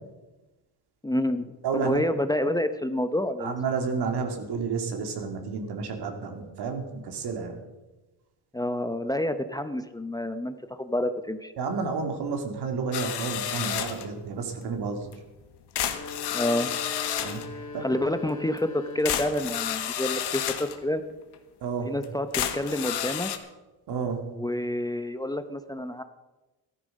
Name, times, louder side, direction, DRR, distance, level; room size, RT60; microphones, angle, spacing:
voice 1, 1.0-3.6 8.5-11.5 16.3-16.7 17.5-21.0 21.8-23.3 24.3-26.0, left 1 dB, 10° left, 9 dB, 0.8 m, -28 dB
voice 2, 1.6-2.0 3.4-7.6 11.6-15.1 17.2-17.5 17.7-17.9 21.6-21.9 23.9-24.2, right 5 dB, 70° right, 4 dB, 2.6 m, -31 dB
sound 1, 12.9-14.1 15.1-15.2 15.7-17.5 18.6-18.7 19.0-20.8 21.3-21.4 22.0-22.1 22.3-23.4, left 10 dB, 75° left, 1.5 m, -30 dB
sound 2, 15.8-19.9, left 4 dB, 45° left, 3.3 m, -40 dB
14.5 x 12.5 x 5.3 m, 1.1 s
cardioid pair, 90°, 41 cm